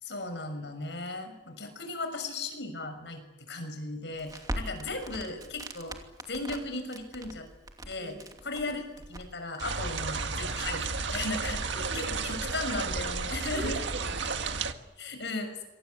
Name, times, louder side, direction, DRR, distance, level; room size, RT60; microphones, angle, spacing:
voice 1, 0.0-6.0 6.3-7.5 7.9-8.2 8.4-13.8 15.0-15.6, left 2 dB, 70° left, 7 dB, 6.4 m, -36 dB
Crackle, 4.1-14.7, right 1 dB, 20° right, 2.8 m, -44 dB
sound 1, 9.6-14.7, right 4 dB, 80° right, 1.8 m, -32 dB
voice 2, 11.8-12.5 13.5-14.8, right 2 dB, 55° right, 7 dB, 6.5 m, -42 dB
27.5 x 24.5 x 8.4 m, 0.99 s
head